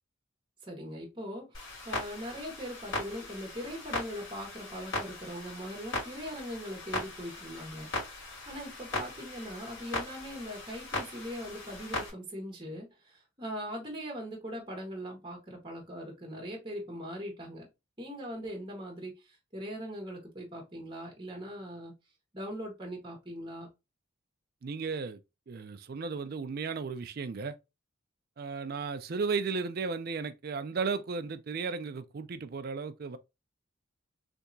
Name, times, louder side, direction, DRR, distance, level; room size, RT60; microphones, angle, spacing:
voice 1, 0.6-7.9 8.5-17.7 18.0-21.9 22.3-23.7, equal, 20° right, 1.2 m, -41 dB
Clock, 1.5-12.1, left 2 dB, 70° left, 2.3 m, -39 dB
voice 2, 24.6-25.2 25.5-27.6 28.4-33.2, right 4 dB, 45° right, 0.4 m, -34 dB
3.4 x 2.8 x 2.6 m
head